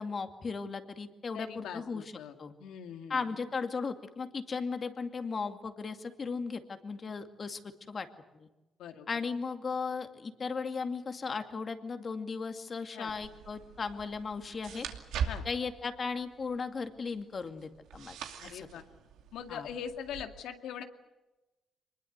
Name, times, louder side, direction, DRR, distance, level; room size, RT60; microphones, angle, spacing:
voice 1, 0.0-2.0 2.4-2.5 3.1-7.6 7.9-8.1 8.4-8.5 9.1-14.9 15.4-18.2 18.5-18.7 19.5-19.7, left 5 dB, 40° left, 7 dB, 2.3 m, -36 dB
voice 2, 1.3-2.3 2.6-3.4 8.8-9.1 12.9-13.1 15.3-15.4 18.4-18.8 19.3-20.8, left 8 dB, 85° left, 6 dB, 2.2 m, -42 dB
sound 1, 13.1-20.2, right 6 dB, 85° right, 2.6 m, -42 dB
24.0 x 21.0 x 8.2 m, 1.1 s
cardioid pair, 90°, 0 cm